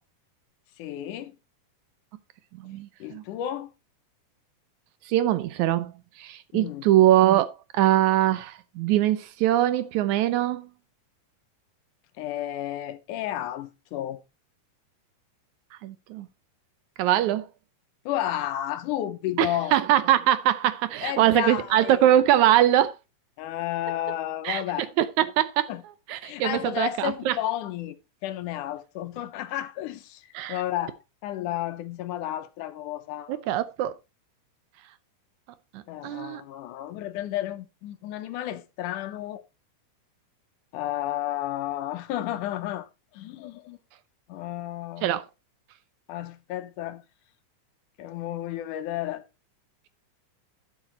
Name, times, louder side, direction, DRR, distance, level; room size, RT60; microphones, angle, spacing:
voice 1, 0.8-1.4 3.0-3.7 6.5-6.9 12.2-14.2 18.1-19.7 21.0-22.0 23.4-24.9 25.7-25.8 26.2-28.0 28.2-33.4 35.9-39.4 40.7-43.8 44.3-45.1 46.1-47.0 48.0-49.3, left 13 dB, 80° left, 2.3 m, -32 dB
voice 2, 2.6-3.2 5.1-10.7 15.8-16.3 17.0-17.5 19.4-23.0 24.5-24.6 25.0-25.7 26.1-27.4 30.3-30.6 33.3-33.9 35.7-36.4 45.0-45.2, right 12 dB, 75° right, 1.9 m, -22 dB
11.5 x 7.2 x 4.1 m
omnidirectional pair, 3.7 m